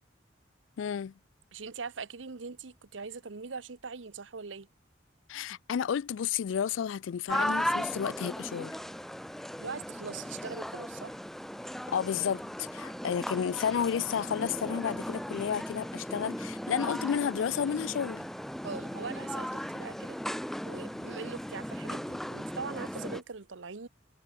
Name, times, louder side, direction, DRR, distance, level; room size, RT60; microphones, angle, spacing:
voice 1, 0.8-1.1 5.3-8.8 11.9-18.3, left 8 dB, 80° left, 0.4 m, -31 dB
voice 2, 1.5-4.7 9.6-11.2 18.6-20.2 20.6-23.9, right 4 dB, 75° right, 1.0 m, -41 dB
sound 1, 7.3-23.2, equal, ahead, 0.4 m, -37 dB
head